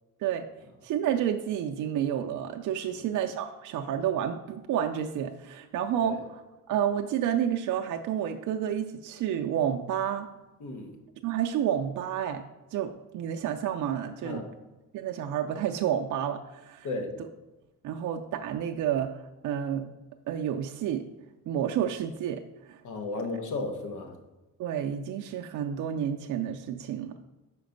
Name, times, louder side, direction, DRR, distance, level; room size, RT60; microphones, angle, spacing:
voice 1, 0.8-6.4 6.7-10.3 11.2-12.4 12.7-14.4 14.9-16.9 17.8-19.9 20.3-21.1 21.5-22.8 24.6-27.2, right 9 dB, 65° right, 3 dB, 0.5 m, -30 dB
voice 2, 10.6-10.9 14.2-14.5 16.8-17.2 22.8-24.2, left 3 dB, 65° left, 4 dB, 1.1 m, -34 dB
5.8 x 5.1 x 5.2 m, 1.1 s
cardioid pair, 180°, 33 cm